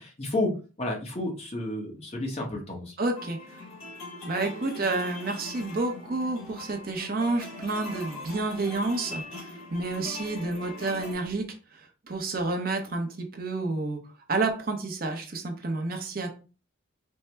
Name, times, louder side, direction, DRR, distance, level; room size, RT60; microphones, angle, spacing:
voice 1, 0.0-2.9, left 2 dB, 30° left, 0 dB, 0.8 m, -31 dB
voice 2, 3.0-3.4 4.2-9.2 9.7-11.4 11.7-16.3, right 3 dB, 45° right, 4 dB, 0.6 m, -30 dB
sound 1, 3.1-11.1, left 2 dB, 85° left, 1.4 m, -41 dB
4.4 x 2.0 x 3.3 m, 0.34 s
head